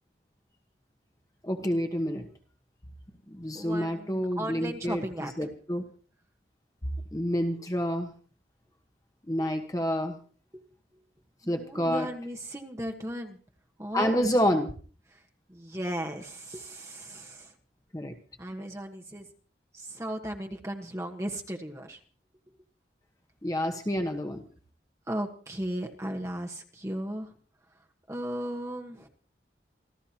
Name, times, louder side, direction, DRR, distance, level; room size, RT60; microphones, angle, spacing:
voice 1, 1.4-2.3 3.3-5.8 7.1-8.1 9.3-10.2 11.5-12.1 13.9-14.7 17.9-18.1 23.4-24.4, equal, 20° left, 5 dB, 1.2 m, -28 dB
voice 2, 3.5-5.3 10.5-10.6 11.4-13.4 13.8-14.3 15.5-17.5 18.4-19.3 19.7-22.0 25.1-27.3 28.1-29.1, right 1 dB, 15° right, 2 dB, 1.3 m, -36 dB
28.0 x 13.5 x 2.9 m, 0.41 s
head